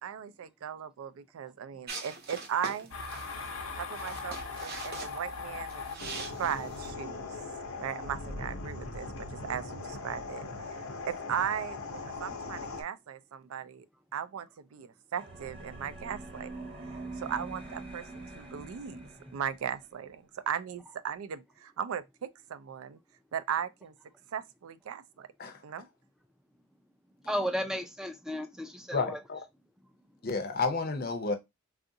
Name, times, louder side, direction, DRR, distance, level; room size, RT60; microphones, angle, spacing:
voice 1, 0.0-2.9 3.8-7.4 7.8-10.8 11.1-13.8 14.1-16.7 17.2-23.0 23.3-23.9 24.3-25.3 25.6-25.9, right 8 dB, 80° right, 0.4 m, -37 dB
sound 1, 1.9-6.9, right 3 dB, 45° right, 0.7 m, -43 dB
sound 2, 2.9-12.8, left 3 dB, 85° left, 0.7 m, -40 dB
sound 3, 15.2-19.8, right 2 dB, 25° right, 1.0 m, -44 dB
voice 2, 27.2-29.2, equal, 5° right, 0.3 m, -34 dB
voice 3, 28.9-29.4 30.2-31.4, left 4 dB, 45° left, 0.6 m, -31 dB
3.6 x 2.4 x 2.6 m
head